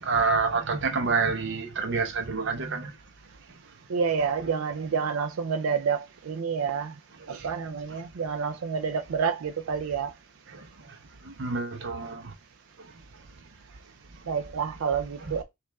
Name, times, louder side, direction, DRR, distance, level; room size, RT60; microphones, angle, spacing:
voice 1, 0.0-2.9 7.4-7.5 7.9-8.0 10.5-11.0 11.2-12.3 15.2-15.4, right 4 dB, 55° right, 0.8 m, -28 dB
voice 2, 3.9-6.9 7.3-10.1 14.3-15.4, right 6 dB, 85° right, 0.4 m, -28 dB
5.2 x 2.5 x 3.4 m
head